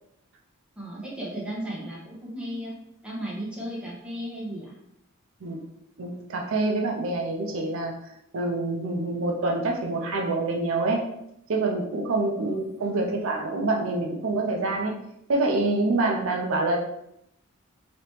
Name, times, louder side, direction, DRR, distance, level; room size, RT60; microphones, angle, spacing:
voice 1, 0.8-2.7 3.0-4.7 12.4-13.2, right 1 dB, 5° right, -6 dB, 1.1 m, -35 dB
voice 2, 6.0-7.9 8.3-11.0 11.5-14.9 15.3-16.8, right 2 dB, 70° right, 1 dB, 0.5 m, -26 dB
3.2 x 2.9 x 3.1 m, 0.78 s
head